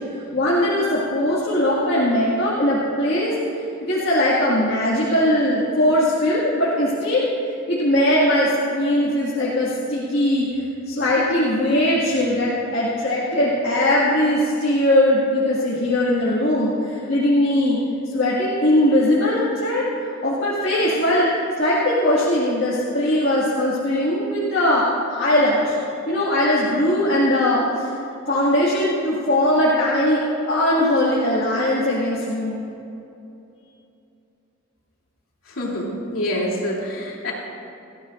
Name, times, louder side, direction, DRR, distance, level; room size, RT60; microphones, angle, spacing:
voice 1, 0.3-3.3 3.9-7.2 7.7-10.5 10.9-17.8 18.1-19.9 20.2-21.3 21.6-25.8 26.1-27.9 28.3-30.2 30.5-32.6, left 1 dB, 55° left, -8 dB, 2.0 m, -20 dB
voice 2, 35.5-37.3, left 1 dB, 80° left, -4 dB, 2.9 m, -26 dB
18.5 x 14.5 x 2.5 m, 2.8 s
head